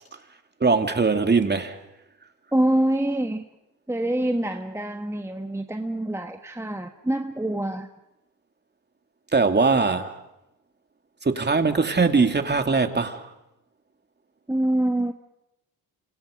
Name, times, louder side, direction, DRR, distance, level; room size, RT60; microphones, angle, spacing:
voice 1, 0.6-1.8 9.3-10.2 11.2-13.3, right 4 dB, 25° right, 2.6 m, -21 dB
voice 2, 2.5-3.5 3.9-7.9 14.5-15.1, right 1 dB, 5° right, 1.4 m, -25 dB
28.5 x 27.5 x 5.2 m
supercardioid pair, 75°, 39 cm